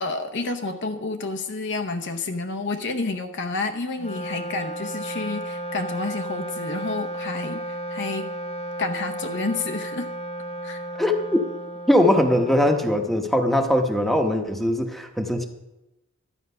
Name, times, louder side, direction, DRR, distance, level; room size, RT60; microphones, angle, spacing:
voice 1, 0.0-8.3 8.8-10.1 10.6-10.8, left 3 dB, 55° left, 7 dB, 0.8 m, -29 dB
Wind instrument woodwind instrument, 3.9-13.5, right 1 dB, 30° left, 0.7 m, -34 dB
voice 2, 11.0-11.4 11.9-15.5, left 1 dB, ahead, 5 dB, 1.0 m, -21 dB
12.0 x 8.8 x 5.6 m, 0.97 s
head